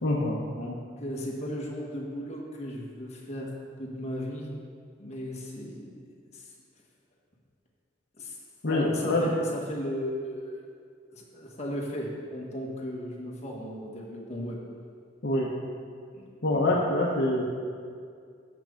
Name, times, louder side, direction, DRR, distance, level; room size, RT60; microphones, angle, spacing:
voice 1, 0.0-0.4 8.6-9.3 15.2-15.5 16.4-17.4, left 1 dB, 65° left, -4 dB, 0.9 m, -25 dB
voice 2, 0.6-3.5 3.8-4.5 5.0-6.5 8.2-8.4 8.7-10.6 11.1-14.6 16.1-16.3 16.6-16.8, equal, 35° left, -2 dB, 1.4 m, -36 dB
7.0 x 5.9 x 6.3 m, 2.2 s
head